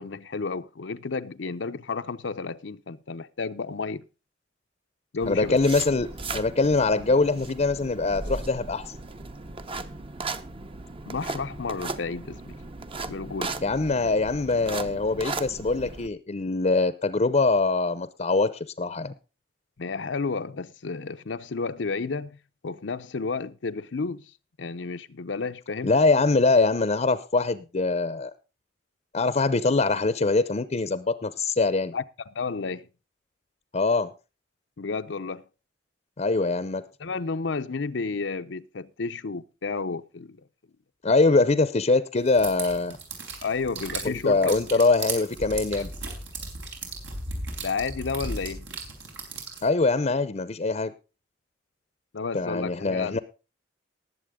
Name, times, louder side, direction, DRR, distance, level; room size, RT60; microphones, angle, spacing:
voice 1, 0.0-4.0 5.1-5.6 11.1-12.6 13.1-13.6 19.8-22.4 22.6-24.3 24.6-25.9 31.9-32.9 34.8-35.4 37.0-40.4 43.4-44.8 45.7-45.9 47.6-48.7 52.1-53.2, left 4 dB, 80° left, 0.7 m, -32 dB
sound 1, 5.2-16.1, right 3 dB, 30° right, 0.8 m, -37 dB
voice 2, 5.3-8.9 13.6-19.1 25.8-28.3 29.1-31.9 33.7-34.1 36.2-36.8 41.0-43.0 44.0-45.9 49.6-50.9 52.3-53.2, left 3 dB, 40° left, 0.6 m, -23 dB
sound 2, 42.3-49.7, right 3 dB, 85° right, 4.3 m, -36 dB
19.5 x 7.5 x 3.6 m
head